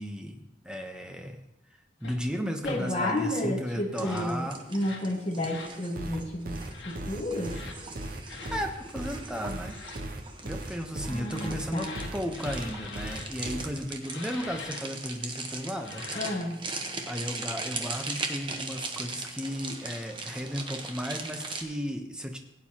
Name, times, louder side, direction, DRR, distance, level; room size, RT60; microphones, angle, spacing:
voice 1, 0.0-1.4 2.0-4.6 8.5-9.8 10.4-16.0 17.1-22.4, equal, 5° right, 3 dB, 0.8 m, -34 dB
sound 1, 2.0-2.2 2.6-2.8 3.9-4.3 4.8-5.1 5.4-5.8 6.6-7.0 7.5-7.8 8.3-8.6 9.5-10.0 11.1-13.3 14.0-14.8 15.7-16.5, left 4 dB, 75° left, 1.6 m, -43 dB
voice 2, 2.6-6.6 6.9-7.5 11.1-12.0 16.1-16.6, left 1 dB, 30° left, -1 dB, 1.2 m, -31 dB
sound 2, 3.9-21.6, right 3 dB, 25° right, 1.0 m, -39 dB
sound 3, 6.0-13.7, right 1 dB, 50° right, 0.8 m, -37 dB
16.5 x 9.3 x 2.9 m, 0.85 s
head